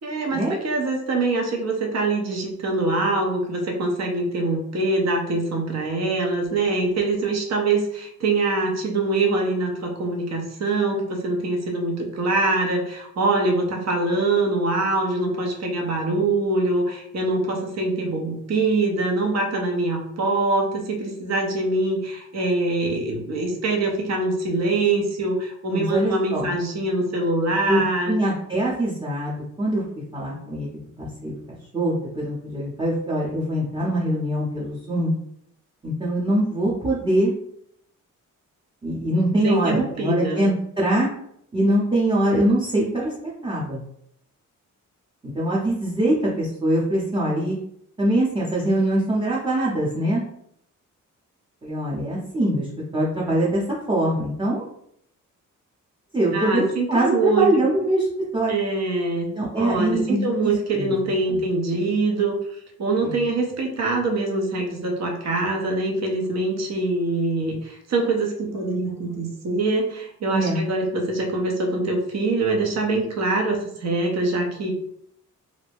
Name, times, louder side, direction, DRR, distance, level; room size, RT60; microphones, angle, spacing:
voice 1, 0.0-28.2 39.4-40.4 56.3-57.5 58.5-74.7, right 2 dB, 55° right, 1 dB, 0.8 m, -24 dB
voice 2, 25.7-26.5 27.7-27.8 28.1-29.8 30.1-31.3 31.7-35.1 35.8-37.3 38.8-41.1 41.5-43.1 43.4-43.8 45.3-47.6 48.0-50.2 51.6-54.7 56.1-58.5 59.3-60.9 61.3-61.4 63.0-63.2 70.3-70.6, right 1 dB, 15° right, -7 dB, 0.7 m, -23 dB
2.5 x 2.1 x 3.4 m, 0.72 s
cardioid pair, 75°, 32 cm